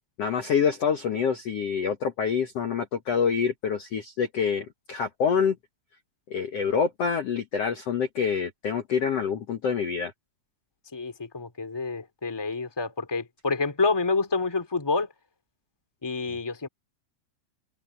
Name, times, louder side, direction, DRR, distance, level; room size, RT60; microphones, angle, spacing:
voice 1, 0.2-5.6 6.3-10.1, left 6 dB, 75° left, 1.4 m, -26 dB
voice 2, 10.9-15.1 16.0-16.7, left 4 dB, 10° left, 1.4 m, -28 dB
omnidirectional pair, 4.9 m